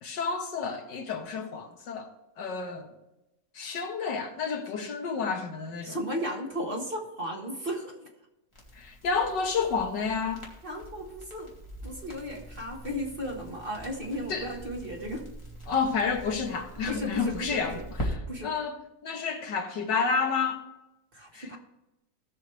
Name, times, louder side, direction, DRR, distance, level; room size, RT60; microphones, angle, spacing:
voice 1, 0.0-2.1 2.4-2.9 3.6-6.0 8.8-10.5 14.3-14.5 15.7-18.8 19.0-20.6 21.3-21.6, left 5 dB, 70° left, 1.9 m, -30 dB
voice 2, 5.8-7.9 10.6-11.5 11.8-15.3 16.8-17.8 18.3-18.5 21.1-21.6, equal, 30° right, 1.6 m, -35 dB
Crackle, 8.5-18.1, right 1 dB, 15° left, 2.2 m, -43 dB
17.5 x 6.4 x 3.3 m
omnidirectional pair, 2.0 m